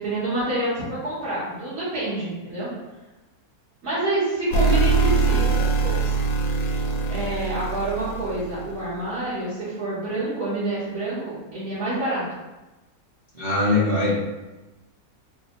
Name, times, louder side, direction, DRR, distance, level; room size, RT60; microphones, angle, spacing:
voice 1, 0.0-2.7 3.8-6.2 6.6-6.8 7.1-12.2, right 1 dB, 80° right, -13 dB, 1.6 m, -28 dB
sound 1, 4.5-8.8, right 4 dB, 70° left, 0.9 m, -22 dB
voice 2, 13.4-14.2, left 2 dB, 40° right, -9 dB, 0.8 m, -21 dB
3.2 x 2.6 x 3.0 m, 1.1 s
omnidirectional pair, 1.6 m